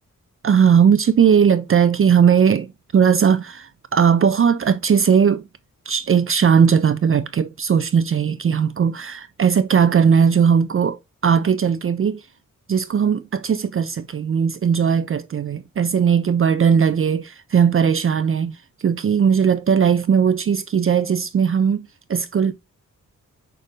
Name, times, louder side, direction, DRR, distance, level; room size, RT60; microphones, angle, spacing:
voice 1, 0.4-5.5 5.9-12.2 12.7-22.5, right 7 dB, 45° right, 0.4 m, -18 dB
6.5 x 2.6 x 3.1 m
wide cardioid pair, 100°, 32 cm